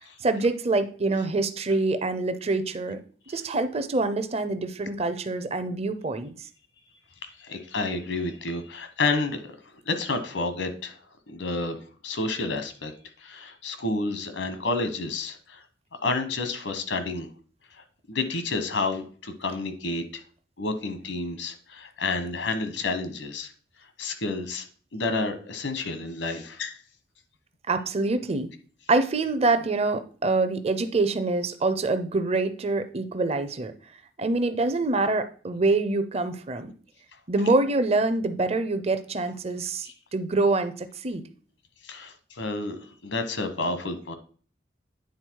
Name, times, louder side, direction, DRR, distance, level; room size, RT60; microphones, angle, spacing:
voice 1, 0.2-3.0 3.3-6.3 27.7-28.5 28.9-33.7 34.2-36.7 37.3-41.2, right 3 dB, 35° right, 10 dB, 0.6 m, -25 dB
voice 2, 7.3-9.6 9.8-11.0 11.3-12.9 13.2-15.6 16.0-17.3 17.7-20.2 20.6-23.5 24.0-24.7 24.9-26.8 39.8-39.9 41.8-44.1, left 3 dB, 85° left, 9 dB, 1.1 m, -30 dB
9.5 x 3.9 x 4.6 m, 0.42 s
head